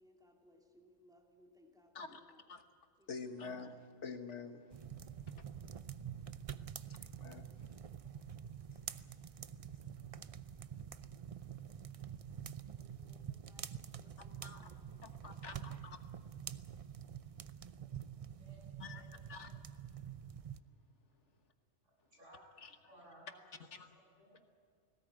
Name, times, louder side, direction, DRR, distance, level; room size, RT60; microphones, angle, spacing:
voice 1, 0.0-2.5 3.0-3.3 12.8-15.0, equal, 5° right, 1 dB, 2.6 m, -67 dB
voice 2, 3.1-4.7 6.9-7.5 14.4-14.7 15.0-16.0 18.8-19.6 22.6-22.7 23.7-23.9, left 4 dB, 70° left, 7 dB, 1.6 m, -48 dB
sound 1, 4.7-20.6, right 8 dB, 50° right, 0.4 m, -47 dB
voice 3, 18.3-19.1 22.1-22.4 22.9-23.4 23.9-24.4, right 1 dB, 80° right, -3 dB, 7.6 m, -60 dB
19.5 x 17.0 x 9.1 m, 2.1 s
omnidirectional pair, 1.3 m